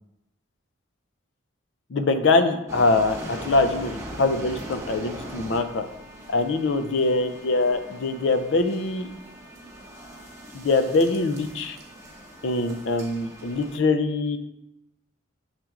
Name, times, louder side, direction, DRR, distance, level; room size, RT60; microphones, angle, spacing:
voice 1, 1.9-5.8 6.3-9.1 10.5-11.8 12.4-14.4, left 3 dB, 65° left, 9 dB, 0.5 m, -23 dB
sound 1, 2.7-13.7, right 1 dB, 15° right, 0.8 m, -40 dB
6.6 x 5.9 x 2.5 m, 0.90 s
head